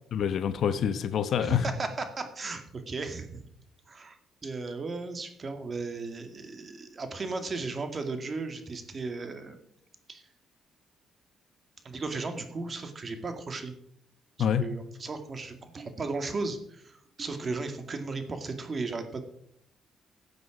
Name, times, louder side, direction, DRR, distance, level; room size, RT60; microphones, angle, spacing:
voice 1, 0.1-1.6 14.4-14.7, left 8 dB, 65° left, 1.0 m, -26 dB
voice 2, 1.4-1.9 2.2-3.4 3.9-9.6 10.1-10.2 11.8-13.7 14.4-19.2, right 3 dB, 35° right, 2.2 m, -35 dB
15.0 x 8.1 x 5.1 m
cardioid pair, 90°, 0 cm